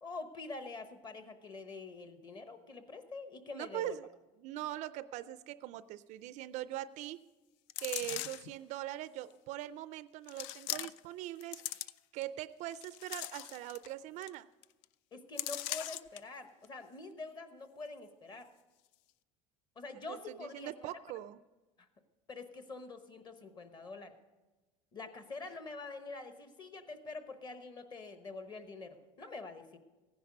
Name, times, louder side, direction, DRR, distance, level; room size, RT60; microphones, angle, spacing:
voice 1, 0.0-4.0 15.1-18.5 19.8-20.9 22.3-24.2 24.9-29.8, left 3 dB, 25° left, 8 dB, 1.1 m, -46 dB
voice 2, 3.5-4.1 4.4-7.2 7.8-11.9 12.1-14.5 20.1-21.4, right 13 dB, 50° right, 15 dB, 0.4 m, -42 dB
sound 1, 7.7-8.5 9.3-9.4 10.3-11.1 11.4-12.2 12.7-13.9 14.2-14.3 14.6-14.8 15.4-16.2 16.6-16.7, left 14 dB, 80° left, 0.4 m, -40 dB
16.0 x 10.0 x 5.2 m, 1.1 s
cardioid pair, 160°, 16 cm